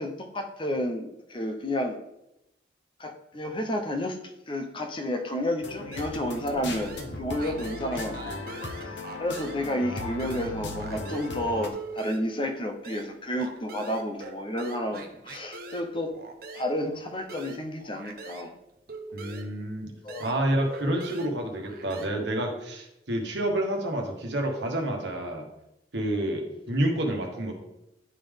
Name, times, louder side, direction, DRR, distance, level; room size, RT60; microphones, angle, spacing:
voice 1, 0.0-2.0 3.0-4.2 4.5-16.1 16.5-18.5 20.0-20.4, left 1 dB, 30° left, 5 dB, 0.7 m, -31 dB
sound 1, 5.6-11.7, left 2 dB, 75° left, 0.9 m, -37 dB
sound 2, 5.9-6.5 6.7-9.7 9.9-18.5 18.9-22.1, right 2 dB, 55° right, 0.8 m, -43 dB
voice 2, 19.1-19.9 20.2-25.4 25.9-27.5, right 1 dB, 75° right, 1 dB, 1.3 m, -29 dB
10.5 x 3.7 x 3.5 m, 0.87 s
head